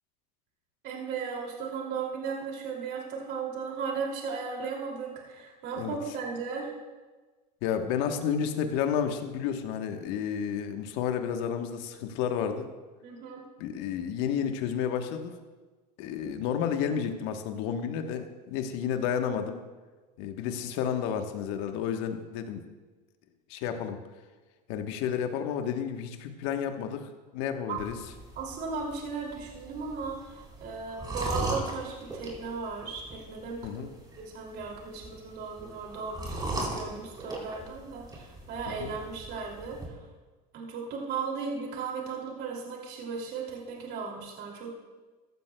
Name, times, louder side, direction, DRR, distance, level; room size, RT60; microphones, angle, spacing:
voice 1, 0.8-6.7 13.0-13.4 27.7-27.8 28.4-33.8 34.2-40.0 40.5-44.7, right 5 dB, 55° right, -1 dB, 2.7 m, -36 dB
voice 2, 7.6-12.7 13.6-15.4 16.0-19.6 20.2-22.6 23.5-24.0 24.7-28.0 33.6-33.9 38.7-38.9, left 8 dB, 65° left, 6 dB, 1.2 m, -31 dB
sound 1, 27.8-39.9, right 1 dB, 20° right, 3.8 m, -39 dB
15.0 x 12.5 x 2.3 m, 1.3 s
supercardioid pair, 95°, 21 cm